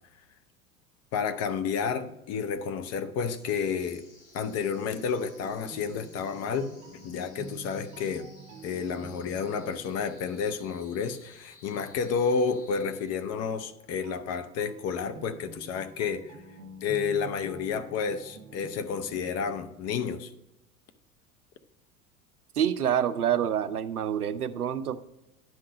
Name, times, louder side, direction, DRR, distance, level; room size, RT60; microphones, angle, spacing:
voice 1, 1.1-4.0 4.3-6.7 7.0-8.3 8.6-16.4 16.8-20.3, left 6 dB, 35° left, 10 dB, 0.7 m, -30 dB
sound 1, 3.2-13.5, left 2 dB, 50° left, 3.2 m, -57 dB
sound 2, 4.9-11.6 13.5-20.0, right 4 dB, 40° right, 1.2 m, -49 dB
voice 2, 22.6-25.0, right 9 dB, 90° right, 13 dB, 0.5 m, -27 dB
10.5 x 3.8 x 6.2 m, 0.94 s
figure-of-eight pair, 80°, 44 cm